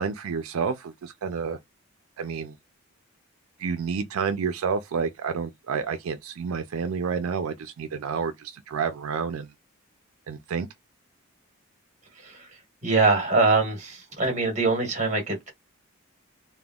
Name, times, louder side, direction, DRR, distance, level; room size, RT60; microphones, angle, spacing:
voice 1, 0.0-1.6 2.2-2.6 3.6-9.5 10.3-10.7, right 5 dB, 85° right, 0.4 m, -29 dB
voice 2, 12.2-15.5, right 3 dB, 35° right, 1.4 m, -24 dB
3.4 x 2.1 x 2.3 m
head